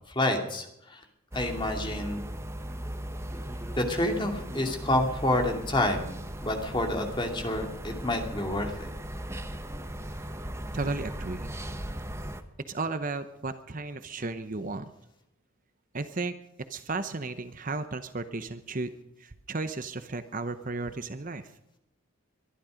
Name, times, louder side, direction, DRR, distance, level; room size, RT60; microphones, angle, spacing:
voice 1, 0.1-1.0 1.3-2.3 3.8-8.9, left 1 dB, 20° left, 3 dB, 2.5 m, -28 dB
sound 1, 1.3-12.4, right 1 dB, 10° right, 1.0 m, -38 dB
voice 2, 10.7-11.5 12.7-14.9 15.9-16.4 16.7-18.9 19.2-21.5, right 3 dB, 40° right, 10 dB, 0.8 m, -34 dB
22.5 x 12.0 x 5.1 m, 0.84 s
head